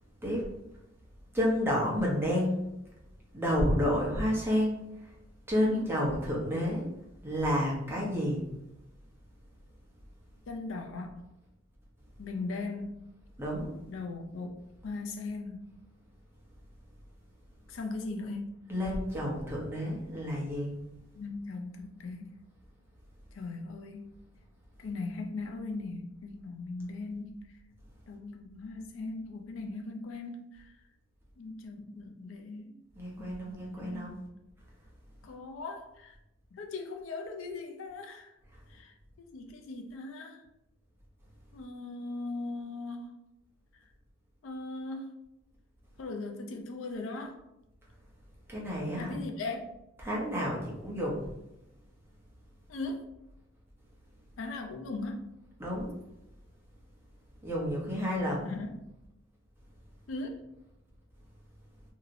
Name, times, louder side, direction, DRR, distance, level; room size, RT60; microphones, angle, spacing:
voice 1, 1.3-2.6 3.3-4.8 5.5-6.9 7.2-8.4 13.4-13.7 18.7-20.7 33.0-34.2 48.5-49.2 50.0-51.3 55.6-55.9 57.4-58.5, equal, 10° right, -4 dB, 0.8 m, -30 dB
voice 2, 10.5-11.2 12.2-13.0 13.9-15.7 17.7-18.6 21.1-22.4 23.3-24.1 24.8-27.5 28.1-30.8 31.4-32.8 33.2-34.2 35.2-36.1 36.5-38.3 38.7-40.4 41.5-43.2 44.4-45.1 46.0-47.4 48.9-49.7 52.7-53.1 54.4-55.3 58.4-58.9 60.1-60.5, left 3 dB, 75° left, 3 dB, 0.4 m, -39 dB
2.9 x 2.7 x 2.5 m, 0.87 s
head